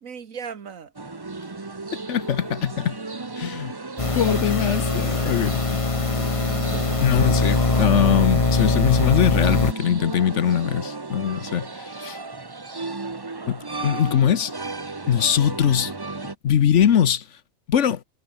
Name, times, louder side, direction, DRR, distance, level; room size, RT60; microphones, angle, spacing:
voice 1, 0.0-0.9 6.7-7.9, right 6 dB, 70° right, 1.8 m, -38 dB
sound 1, 0.9-16.3, right 3 dB, 20° right, 0.9 m, -34 dB
voice 2, 1.9-3.0 3.4-3.7 4.1-5.8 7.0-12.2 13.5-14.5 15.1-15.9 16.4-17.2 17.7-18.0, left 9 dB, 60° left, 1.2 m, -22 dB
sound 2, 4.0-9.7, left 3 dB, 25° left, 1.4 m, -22 dB
omnidirectional pair, 1.4 m